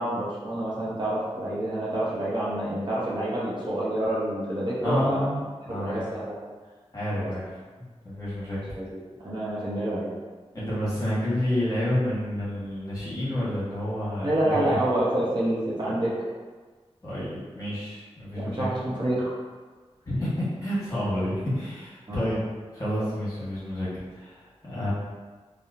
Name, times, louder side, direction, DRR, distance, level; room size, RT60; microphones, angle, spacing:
voice 1, 0.0-5.2 5.7-6.3 7.2-7.3 8.7-9.0 9.2-10.1 14.2-16.2 18.3-19.4 22.1-22.3, right 1 dB, 45° right, -8 dB, 0.7 m, -28 dB
voice 2, 4.8-5.4 5.6-6.0 6.9-8.6 10.5-14.8 17.0-18.7 20.1-22.4 22.7-24.9, left 1 dB, 30° left, -10 dB, 1.1 m, -29 dB
2.9 x 2.0 x 2.4 m, 1.4 s
wide cardioid pair, 80°, 11 cm